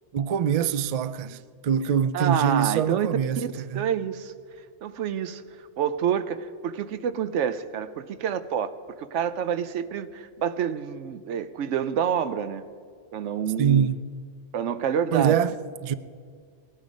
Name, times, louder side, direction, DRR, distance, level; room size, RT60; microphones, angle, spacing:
voice 1, 0.1-3.9 13.6-14.0 15.1-15.5 15.8-15.9, right 8 dB, 55° right, 0.4 m, -24 dB
voice 2, 2.1-3.1 3.7-4.3 4.8-5.4 5.8-12.6 13.1-13.9 14.5-15.4, right 8 dB, 80° right, 1.0 m, -28 dB
19.0 x 12.0 x 5.2 m
omnidirectional pair, 1.2 m